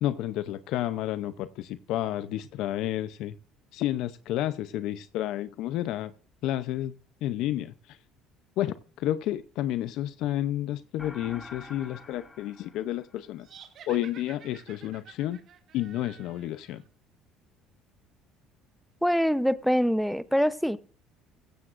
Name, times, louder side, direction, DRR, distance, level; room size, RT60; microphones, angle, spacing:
voice 1, 0.0-3.4 3.7-6.1 6.4-7.0 7.2-8.0 8.6-13.5 13.9-15.4 15.7-16.8, left 13 dB, 70° left, 0.6 m, -31 dB
sound 1, 11.0-13.6, left 3 dB, 20° left, 2.5 m, -47 dB
sound 2, 13.4-16.8, right 8 dB, 55° right, 2.3 m, -51 dB
voice 2, 19.0-20.8, equal, ahead, 0.8 m, -24 dB
16.0 x 15.5 x 2.5 m
supercardioid pair, 100°, 0 cm